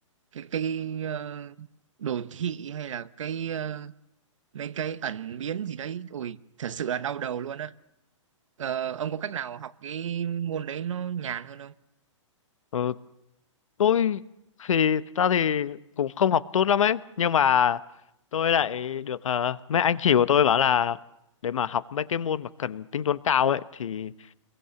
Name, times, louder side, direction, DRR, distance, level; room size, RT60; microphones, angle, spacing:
voice 1, 0.3-1.7 2.0-3.9 4.5-7.7 8.6-11.7, right 8 dB, 70° right, 1.0 m, -32 dB
voice 2, 13.8-14.2 14.6-17.8 18.3-21.0 21.4-24.1, left 8 dB, 80° left, 1.0 m, -24 dB
27.0 x 22.5 x 7.0 m
hypercardioid pair, 150°, 16 cm